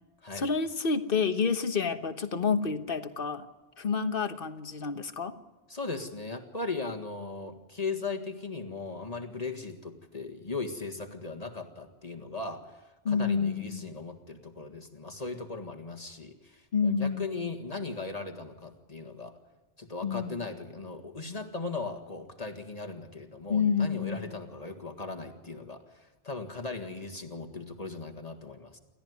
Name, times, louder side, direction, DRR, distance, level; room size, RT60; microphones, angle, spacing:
voice 1, 0.3-3.5 3.8-5.4 13.0-13.9 16.7-17.4 20.0-20.3 23.5-24.3, left 5 dB, 60° left, 9 dB, 1.4 m, -29 dB
voice 2, 5.7-19.4 19.8-28.8, left 3 dB, 40° left, 3 dB, 1.8 m, -38 dB
29.0 x 13.5 x 9.6 m, 1.2 s
omnidirectional pair, 1.1 m